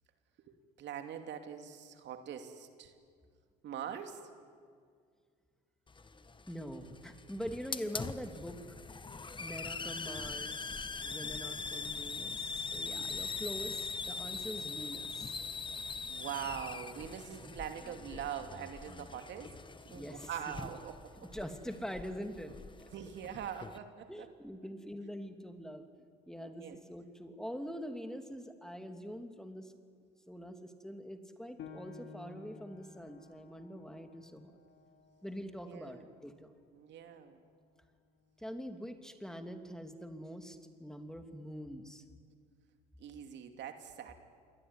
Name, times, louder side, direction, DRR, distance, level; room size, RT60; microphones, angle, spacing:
voice 1, 0.5-2.9 3.6-4.3 16.1-19.6 19.9-21.0 21.2-21.3 22.9-24.3 26.4-26.8 35.6-36.1 36.7-37.4 43.0-44.2, right 9 dB, 60° right, 6 dB, 2.7 m, -43 dB
Hiss, 5.9-23.8, left 4 dB, 25° left, 1.5 m, -42 dB
voice 2, 6.5-8.6 9.4-15.3 17.4-17.5 19.9-20.3 21.2-22.5 24.1-25.8 26.3-29.7 30.3-34.5 35.2-36.5 38.4-42.0, equal, 5° left, 6 dB, 2.9 m, -44 dB
Piano, 31.6-36.8 37.2-37.3 37.9-38.4, left 5 dB, 60° left, 3.2 m, -54 dB
27.5 x 21.5 x 9.9 m, 2.1 s
hypercardioid pair, 70°, 21 cm